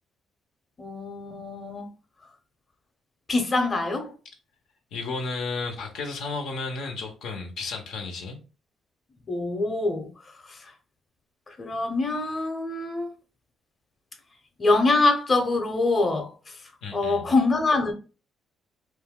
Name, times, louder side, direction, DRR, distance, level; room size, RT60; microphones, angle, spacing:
voice 1, 0.8-1.9 3.3-4.1 9.3-10.1 10.5-10.6 11.5-13.1 14.6-16.3 16.9-17.9, left 3 dB, 30° left, 0.8 m, -24 dB
voice 2, 4.9-8.4 16.8-17.3, left 3 dB, 80° left, 0.7 m, -33 dB
2.6 x 2.2 x 3.5 m
cardioid pair, 90°, 0 cm